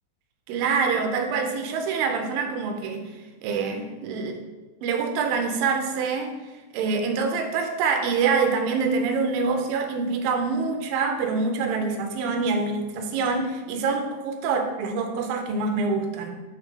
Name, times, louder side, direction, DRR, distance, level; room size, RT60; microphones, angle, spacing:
voice 1, 0.5-3.0 3.4-4.4 4.8-6.3 6.7-16.4, right 4 dB, 90° right, 5 dB, 2.4 m, -25 dB
8.5 x 4.0 x 3.5 m, 1.2 s
omnidirectional pair, 4.1 m